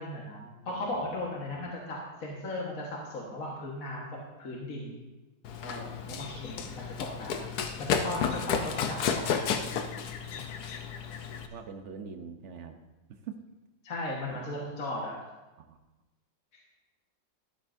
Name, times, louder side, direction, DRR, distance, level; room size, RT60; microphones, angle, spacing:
voice 1, 0.0-4.1 4.4-5.0 5.6-7.5 7.8-9.7 13.8-15.2, left 1 dB, 50° left, -3 dB, 1.8 m, -37 dB
voice 2, 0.7-1.1 1.5-1.7 6.1-6.3 11.5-12.8 13.1-13.4 14.3-14.6 15.6-15.8, right 6 dB, 60° right, 6 dB, 0.7 m, -44 dB
Run, 5.4-11.5, left 7 dB, 65° left, 1.1 m, -32 dB
13.5 x 12.5 x 2.6 m, 1.1 s
omnidirectional pair, 2.1 m